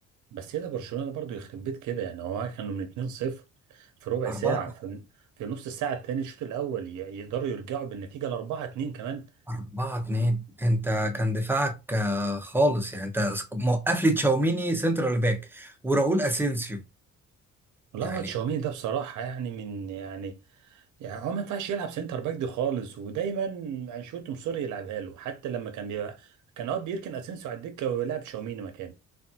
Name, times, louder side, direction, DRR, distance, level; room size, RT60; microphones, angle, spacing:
voice 1, 0.3-3.4 3.7-5.0 5.4-9.3 17.9-20.4 20.7-26.3 26.6-28.9, right 8 dB, 80° right, 0.6 m, -32 dB
voice 2, 4.3-4.6 9.5-16.8 18.0-18.3, right 1 dB, 5° right, 0.7 m, -26 dB
3.4 x 2.2 x 2.7 m
cardioid pair, 90°, 30 cm